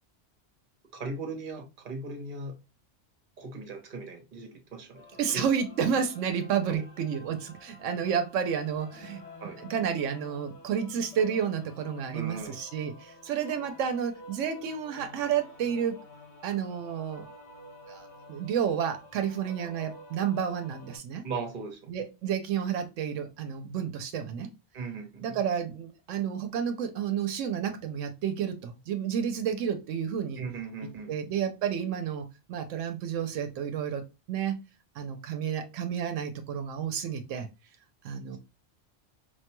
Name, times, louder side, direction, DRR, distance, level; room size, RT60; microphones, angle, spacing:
voice 1, 0.9-2.6 3.4-5.0 5.3-5.5 6.7-6.8 9.4-9.6 12.1-12.6 19.4-19.5 21.2-21.9 24.7-25.4 30.4-31.1, right 3 dB, 50° right, 0.9 m, -38 dB
sound 1, 4.9-21.0, left 2 dB, 65° left, 1.5 m, -50 dB
voice 2, 5.2-9.2 9.6-16.0 16.4-17.2 17.9-21.2 21.9-24.5 25.2-30.4 31.1-34.0 34.3-34.5 35.0-37.5 38.0-38.4, right 8 dB, 85° right, 0.9 m, -31 dB
4.8 x 2.2 x 2.9 m
omnidirectional pair, 1.2 m